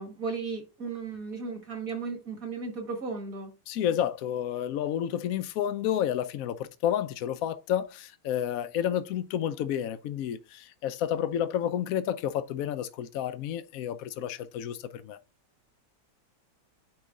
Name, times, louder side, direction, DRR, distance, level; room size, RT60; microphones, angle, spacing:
voice 1, 0.0-3.5, right 4 dB, 45° right, 2.2 m, -35 dB
voice 2, 3.7-15.2, left 10 dB, 85° left, 0.7 m, -30 dB
9.1 x 3.2 x 3.6 m
omnidirectional pair, 2.1 m